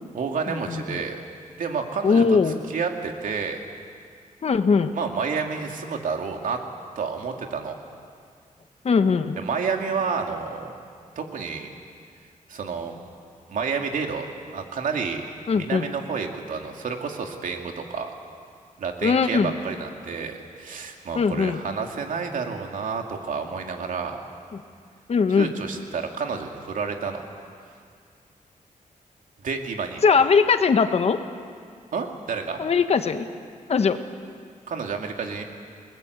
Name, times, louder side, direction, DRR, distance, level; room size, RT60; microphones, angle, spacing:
voice 1, 0.1-1.2 1.6-2.4 2.7-3.6 4.9-6.6 7.0-7.7 9.4-10.8 11.2-11.7 12.5-13.0 13.5-15.2 15.5-18.1 18.8-24.2 25.4-27.3 29.4-30.0 31.9-32.6 34.7-35.4, right 5 dB, 75° right, 3 dB, 2.6 m, -30 dB
voice 2, 0.7-1.0 2.0-2.6 4.4-4.9 8.8-9.4 15.5-15.8 19.0-19.5 21.1-21.6 24.5-24.6 25.1-25.5 30.0-31.2 32.6-33.3 33.7-34.0, left 5 dB, 50° left, 8 dB, 1.3 m, -20 dB
29.5 x 20.5 x 8.1 m, 2.1 s
wide cardioid pair, 140°, 14 cm